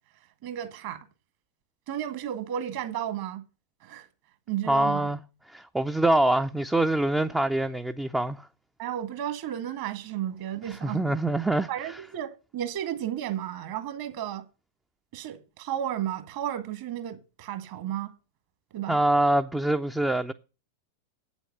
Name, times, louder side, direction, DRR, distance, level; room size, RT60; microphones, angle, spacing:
voice 1, 0.4-1.1 1.9-3.4 3.8-4.1 4.5-5.1 8.8-11.2 11.7-14.4 15.1-18.1 18.7-19.0, right 11 dB, 50° right, 1.6 m, -33 dB
voice 2, 4.7-5.2 5.5-8.5 10.8-11.7 18.9-20.3, right 1 dB, 5° right, 0.4 m, -24 dB
8.3 x 7.1 x 5.5 m
figure-of-eight pair, 90°, 0 cm